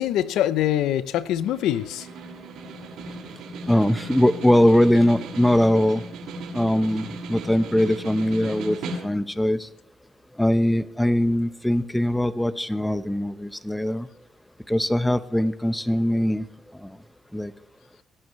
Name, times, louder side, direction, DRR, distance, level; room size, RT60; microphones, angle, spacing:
voice 1, 0.0-2.1, left 12 dB, 90° left, 0.6 m, -24 dB
Snare drum, 1.5-9.4, right 2 dB, 80° right, 6.7 m, -37 dB
voice 2, 3.7-6.0 6.5-8.8 9.0-9.7 10.4-14.1 14.7-16.4 16.8-16.9 17.3-17.5, left 1 dB, 5° left, 1.0 m, -21 dB
24.5 x 12.0 x 3.2 m
cardioid pair, 90°, 0 cm